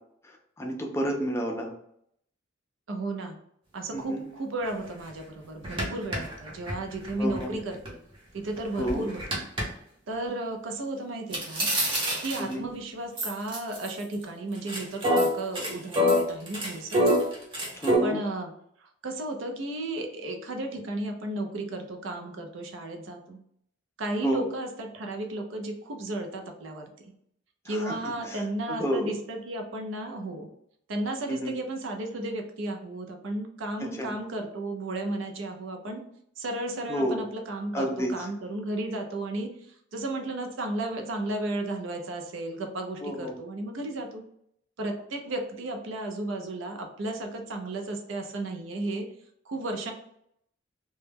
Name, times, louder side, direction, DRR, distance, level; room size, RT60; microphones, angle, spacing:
voice 1, 0.2-1.7 3.9-4.2 7.2-7.5 8.8-9.1 12.4-12.7 17.8-18.2 24.2-24.4 27.7-28.0 28.3-28.4 28.7-29.1 31.3-31.5 34.0-34.1 36.9-37.2 37.7-38.3 43.0-43.4, equal, 15° left, 1 dB, 0.3 m, -30 dB
voice 2, 2.9-3.4 3.7-8.0 8.3-9.4 10.1-11.7 12.2-17.0 18.0-18.5 18.8-23.4 24.0-27.1 27.6-30.5 30.9-36.0 36.4-44.2 44.8-49.1 49.5-49.9, right 2 dB, 75° right, 4 dB, 0.5 m, -34 dB
sound 1, 4.6-4.7 5.1-5.2 5.6-7.9 8.4-9.6 11.3-12.6 13.2-14.2 14.5-18.0, equal, 25° right, 0.6 m, -26 dB
2.2 x 2.0 x 3.2 m, 0.71 s
head